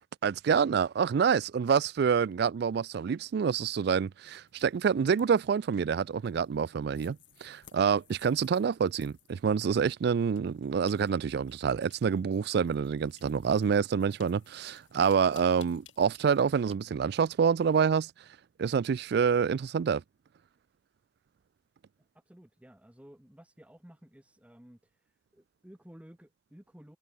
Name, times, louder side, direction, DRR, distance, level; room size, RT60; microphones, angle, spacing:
voice 1, 0.2-18.1 18.6-20.0, right 6 dB, 55° right, 0.3 m, -27 dB
sound 1, 4.5-16.5, left 12 dB, 75° left, 2.6 m, -61 dB
sound 2, 14.4-14.6 15.2-18.2, right 3 dB, 30° right, 4.2 m, -63 dB
voice 2, 22.3-25.0 25.3-27.0, equal, 5° right, 0.8 m, -54 dB
head